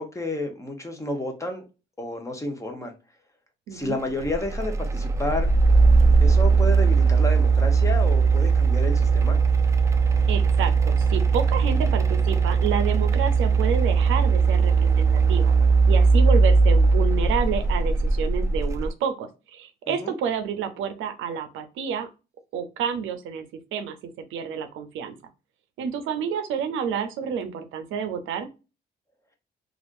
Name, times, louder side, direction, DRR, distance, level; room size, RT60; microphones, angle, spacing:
voice 1, 0.0-1.6 2.0-2.9 3.7-5.5 6.2-9.4 19.9-20.1, left 1 dB, 15° left, 4 dB, 0.9 m, -30 dB
voice 2, 3.7-4.0 10.3-15.5 15.9-22.1 22.5-23.4 23.7-24.0 24.3-25.2 25.8-28.5, right 7 dB, 85° right, 9 dB, 0.6 m, -29 dB
sound 1, 4.2-18.9, right 4 dB, 15° right, 0.4 m, -19 dB
3.4 x 2.5 x 2.5 m, 0.29 s
cardioid pair, 90°, 20 cm